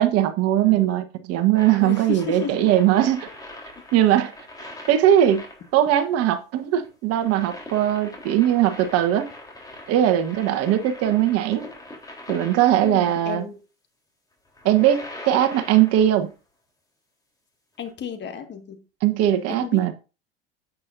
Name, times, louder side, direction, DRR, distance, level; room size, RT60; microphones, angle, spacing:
voice 1, 0.0-3.3 3.9-4.3 4.9-5.4 5.7-9.3 9.9-11.7 12.3-13.4 14.6-16.3 19.0-19.9, right 11 dB, 50° right, 1.4 m, -20 dB
voice 2, 0.6-1.0 1.8-2.6 12.8-13.6 17.8-18.8 19.5-19.9, left 7 dB, 35° left, 2.0 m, -33 dB
sound 1, 1.5-13.4 14.4-16.3 17.9-18.0, left 1 dB, 10° left, 3.8 m, -42 dB
10.0 x 8.3 x 2.7 m
hypercardioid pair, 90°, 31 cm